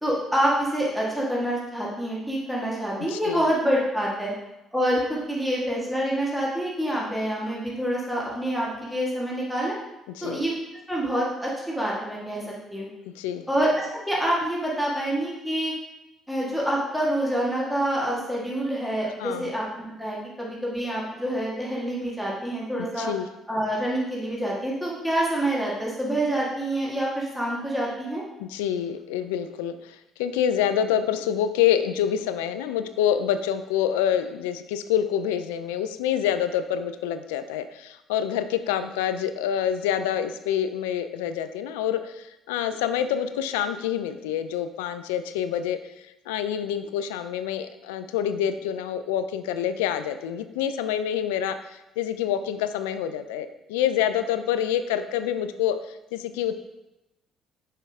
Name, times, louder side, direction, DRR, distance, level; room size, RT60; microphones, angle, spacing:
voice 1, 0.0-4.3 4.7-9.8 10.2-10.5 10.9-12.9 13.5-15.7 16.3-23.1 23.5-28.2, right 1 dB, ahead, -5 dB, 1.8 m, -27 dB
voice 2, 3.0-3.4 10.1-10.4 13.2-13.5 19.2-19.5 23.0-23.3 28.4-45.8 46.3-55.8 56.1-56.6, left 9 dB, 85° left, 11 dB, 0.3 m, -27 dB
5.5 x 5.5 x 3.6 m, 0.94 s
hypercardioid pair, 55°, 0 cm